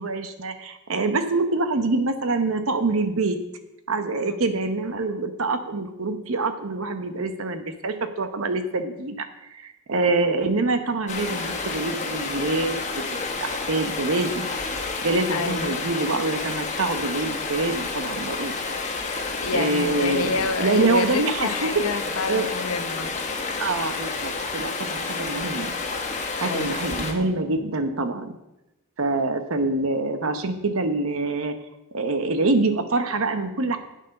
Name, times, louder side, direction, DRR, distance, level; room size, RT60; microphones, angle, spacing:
voice 1, 0.0-3.4 3.9-13.0 13.4-14.5 15.0-18.5 19.5-21.8 22.3-22.5 23.6-25.7 26.3-28.4 29.0-31.6 31.9-33.8, right 3 dB, 70° right, 9 dB, 0.9 m, -25 dB
Stream, 11.1-27.1, left 4 dB, 30° left, 1.3 m, -30 dB
voice 2, 15.3-15.8 19.0-23.1 26.4-26.7, left 3 dB, 75° left, 8 dB, 1.0 m, -29 dB
9.3 x 7.7 x 5.4 m, 0.95 s
head